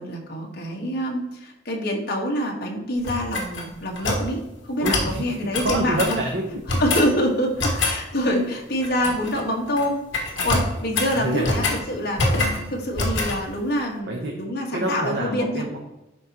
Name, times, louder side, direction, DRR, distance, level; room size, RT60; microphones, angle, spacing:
voice 1, 0.0-6.2 6.8-10.0 10.4-12.2 12.5-15.6, equal, 55° left, 0 dB, 1.5 m, -26 dB
sound 1, 3.0-4.3 4.8-5.1 5.5-6.2 6.7-7.1 7.6-8.0 8.8-9.4 9.7-9.9 10.1-11.8 12.2-12.6 13.0-13.4, left 2 dB, 70° left, 1.4 m, -25 dB
voice 2, 4.8-6.6 7.6-7.9 10.9-11.5 14.1-14.4 14.7-15.8, right 1 dB, 60° right, 0 dB, 1.0 m, -27 dB
11.0 x 4.1 x 2.9 m, 0.98 s
head